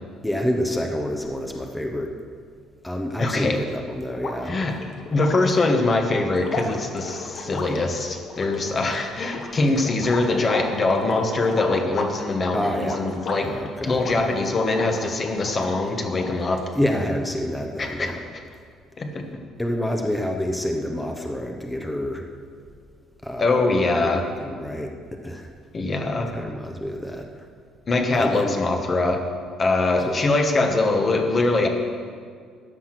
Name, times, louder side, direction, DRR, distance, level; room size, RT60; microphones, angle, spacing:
voice 1, 0.2-2.1 2.8-4.6 12.5-13.0 13.4-14.3 16.7-18.2 19.6-22.2 23.2-23.7 24.0-24.9 25.2-25.5 26.3-27.3 28.2-28.6 30.0-30.1, equal, 5° left, 3 dB, 0.8 m, -28 dB
voice 2, 3.2-3.6 4.5-4.7 5.1-13.5 13.8-16.6 17.8-18.1 19.0-19.3 23.4-24.3 25.7-26.3 27.9-29.2 29.6-31.7, left 2 dB, 25° left, 4 dB, 1.3 m, -23 dB
sound 1, 4.1-15.7 16.1-16.9, left 3 dB, 40° left, 1.4 m, -35 dB
13.5 x 9.6 x 6.0 m, 2.1 s
cardioid pair, 180°, 0 cm